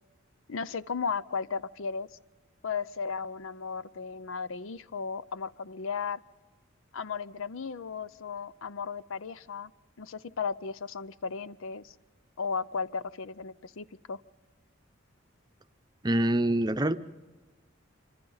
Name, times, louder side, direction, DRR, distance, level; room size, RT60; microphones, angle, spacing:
voice 1, 0.5-2.1 2.6-6.2 6.9-9.7 10.0-11.9 12.4-14.2, left 5 dB, 80° left, 16 dB, 0.6 m, -35 dB
voice 2, 16.0-17.0, right 1 dB, 20° right, 9 dB, 0.7 m, -25 dB
26.5 x 26.0 x 4.0 m, 1.2 s
head